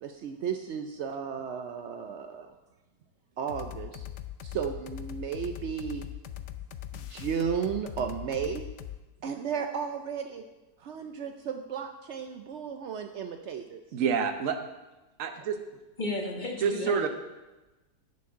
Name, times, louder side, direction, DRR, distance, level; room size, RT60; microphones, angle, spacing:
voice 1, 0.0-2.5 3.4-4.1 4.4-6.1 6.9-8.7 9.2-10.4 10.8-13.8, right 7 dB, 85° right, 6 dB, 0.6 m, -34 dB
sound 1, 3.5-9.0, left 11 dB, 80° left, 0.6 m, -40 dB
voice 2, 13.9-14.6 15.2-15.6 16.6-17.1, right 6 dB, 55° right, 7 dB, 1.1 m, -27 dB
voice 3, 16.0-17.1, left 2 dB, 30° left, 1 dB, 1.3 m, -33 dB
6.9 x 6.5 x 7.1 m, 1.1 s
omnidirectional pair, 1.8 m